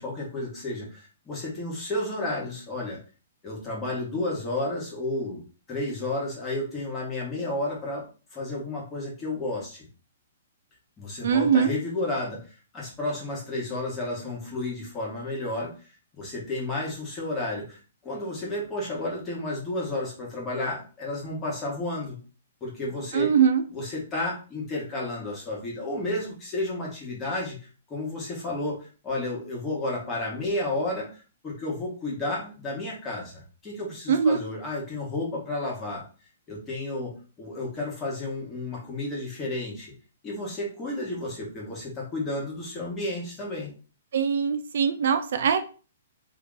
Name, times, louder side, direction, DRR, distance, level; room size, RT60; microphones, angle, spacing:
voice 1, 0.0-3.0 3.4-5.4 5.7-8.1 8.3-9.8 11.0-15.7 16.1-22.2 22.6-23.3 23.7-27.6 27.9-36.0 36.5-39.9 40.2-43.7, left 2 dB, 15° left, -4 dB, 1.3 m, -32 dB
voice 2, 11.2-11.7 23.1-23.6 34.1-34.4 44.1-45.6, right 7 dB, 65° right, 10 dB, 0.4 m, -22 dB
2.8 x 2.8 x 3.6 m, 0.37 s
hypercardioid pair, 165°, 0 cm